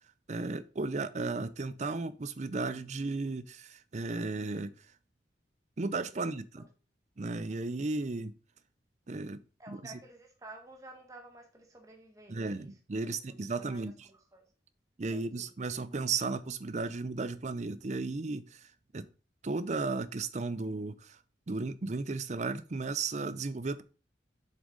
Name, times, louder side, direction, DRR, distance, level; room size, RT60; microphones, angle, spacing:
voice 1, 0.3-4.7 5.8-6.7 7.2-8.3 9.1-9.4 9.7-9.9 12.3-13.9 15.0-18.6 18.9-19.1 19.4-21.2 21.5-23.8, right 3 dB, 40° right, 0.5 m, -34 dB
voice 2, 9.6-12.8 13.1-13.2 13.5-14.5 15.1-15.5, right 1 dB, 20° right, 1.6 m, -52 dB
7.4 x 6.1 x 4.0 m
head